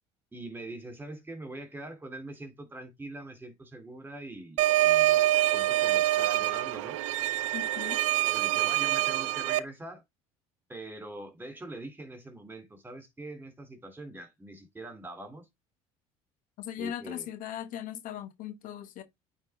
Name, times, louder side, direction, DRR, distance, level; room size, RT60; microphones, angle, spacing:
voice 1, 0.3-7.0 8.3-10.0 10.7-15.5 16.8-17.3, right 2 dB, 15° right, 2.6 m, -43 dB
sound 1, 4.6-9.6, right 15 dB, 85° right, 0.6 m, -25 dB
voice 2, 7.5-8.0 16.6-19.0, left 10 dB, 60° left, 0.9 m, -38 dB
8.9 x 3.7 x 3.4 m
supercardioid pair, 80°, 16 cm